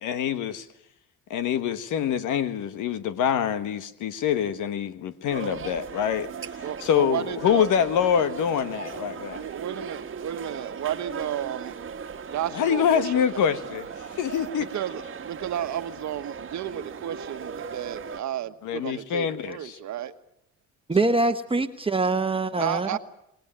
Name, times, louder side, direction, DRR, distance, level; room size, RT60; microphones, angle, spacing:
voice 1, 0.0-0.6 1.3-6.3 6.8-9.4 12.5-13.8 14.2-14.7 18.6-19.6, left 8 dB, 80° left, 1.4 m, -25 dB
sound 1, 5.3-18.2, right 6 dB, 40° right, 1.5 m, -38 dB
voice 2, 6.6-7.7 9.3-13.4 14.5-20.1 22.5-23.0, right 10 dB, 70° right, 1.4 m, -33 dB
voice 3, 20.9-23.0, right 3 dB, 20° right, 1.2 m, -24 dB
26.0 x 19.5 x 8.9 m
cardioid pair, 90°, 30 cm